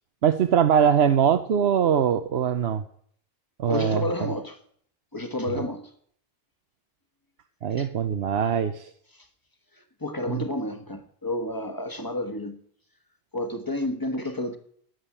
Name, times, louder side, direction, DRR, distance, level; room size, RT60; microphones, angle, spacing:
voice 1, 0.2-2.8 3.6-4.1 5.5-5.6 7.6-8.9 10.3-10.4, right 8 dB, 90° right, 1.0 m, -22 dB
voice 2, 3.7-4.6 5.1-5.9 7.8-7.9 10.0-12.6 13.3-14.6, left 1 dB, 20° left, 1.5 m, -30 dB
12.5 x 10.0 x 8.8 m
omnidirectional pair, 1.0 m